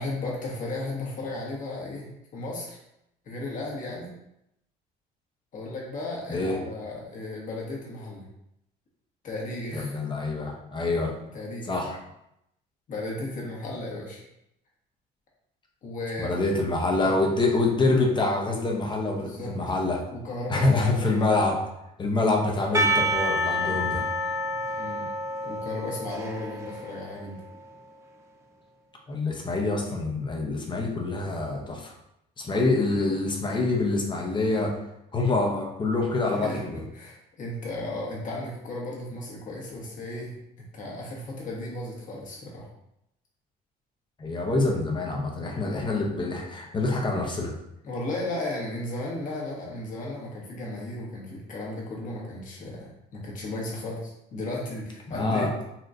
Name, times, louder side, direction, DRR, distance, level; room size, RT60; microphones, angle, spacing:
voice 1, 0.0-2.8 3.2-4.1 5.5-8.2 9.2-9.9 11.3-11.8 12.9-14.2 15.8-16.5 17.0-17.2 19.2-19.6 20.1-21.2 23.6-24.0 24.8-25.1 25.4-27.4 36.3-42.7 47.8-55.5, left 2 dB, 50° left, -3 dB, 1.3 m, -35 dB
voice 2, 9.7-11.2 11.7-12.0 16.2-20.0 20.5-21.6 22.0-24.0 29.1-31.9 32.4-34.8 35.1-36.8 44.2-47.5 55.1-55.5, left 2 dB, 30° left, 1 dB, 0.8 m, -26 dB
Percussion / Church bell, 22.7-27.8, equal, 15° right, 0.6 m, -28 dB
4.2 x 3.0 x 2.6 m, 0.81 s
cardioid pair, 110°, 17 cm